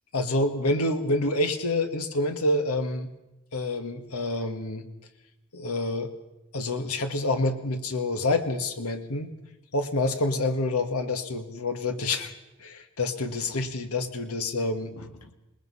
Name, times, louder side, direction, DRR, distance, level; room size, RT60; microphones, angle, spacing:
voice 1, 0.1-3.1 3.5-4.9 5.5-6.1 6.5-9.3 9.7-12.3 12.6-15.3, left 2 dB, 70° left, 7 dB, 1.7 m, -27 dB
26.5 x 20.0 x 5.6 m, 0.98 s
head